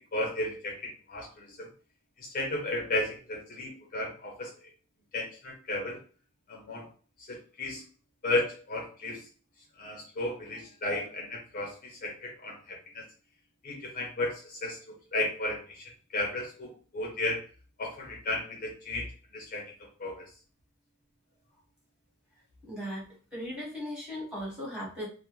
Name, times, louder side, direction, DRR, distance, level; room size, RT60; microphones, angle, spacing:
voice 1, 0.0-1.7 2.2-4.5 5.1-6.0 6.5-6.9 7.3-7.8 8.2-9.2 9.8-12.6 12.9-13.0 13.6-14.8 15.1-15.8 16.1-17.4 17.8-19.1 19.3-19.6 20.0-20.2, left 2 dB, 40° left, 0 dB, 0.5 m, -34 dB
voice 2, 22.7-25.1, equal, 5° right, -5 dB, 1.1 m, -38 dB
2.2 x 2.1 x 2.9 m, 0.38 s
head